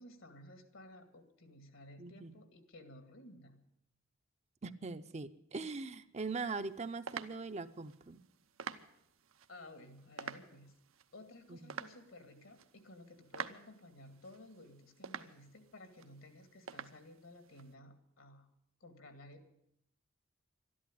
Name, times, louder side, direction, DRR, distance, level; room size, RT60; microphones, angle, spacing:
voice 1, 0.0-3.6 9.5-10.7 11.1-18.5 18.8-19.5, left 1 dB, 75° left, 8 dB, 2.1 m, -55 dB
voice 2, 2.0-2.4 4.6-8.2 11.5-11.8, right 4 dB, 35° right, 10 dB, 0.6 m, -41 dB
sound 1, 6.2-17.7, right 6 dB, 80° right, 0.8 m, -50 dB
13.0 x 11.0 x 9.7 m, 0.76 s
head